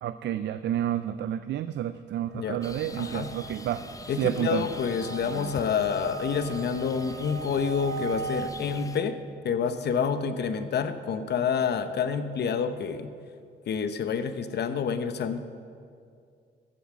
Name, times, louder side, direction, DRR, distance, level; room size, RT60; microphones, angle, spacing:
voice 1, 0.0-3.8 4.2-4.6, right 11 dB, 60° right, 12 dB, 0.4 m, -30 dB
sound 1, 2.3-8.5, right 5 dB, 80° right, 1.1 m, -39 dB
sound 2, 2.6-9.0, left 3 dB, 15° left, 0.5 m, -44 dB
voice 2, 2.9-3.3 4.1-9.2 9.4-13.1 13.7-15.4, left 6 dB, 55° left, 10 dB, 0.9 m, -28 dB
15.0 x 7.1 x 6.1 m, 2.3 s
cardioid pair, 90°, 20 cm